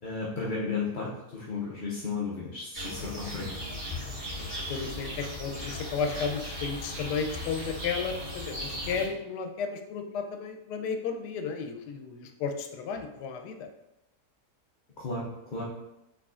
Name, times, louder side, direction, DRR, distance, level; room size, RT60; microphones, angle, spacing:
voice 1, 0.0-3.5 15.0-15.6, left 4 dB, 55° left, -5 dB, 0.5 m, -34 dB
sound 1, 2.7-9.1, left 1 dB, 30° right, 1.8 m, -37 dB
voice 2, 4.1-13.7, left 5 dB, 85° left, 6 dB, 1.2 m, -34 dB
4.8 x 3.7 x 2.4 m, 0.88 s
omnidirectional pair, 1.7 m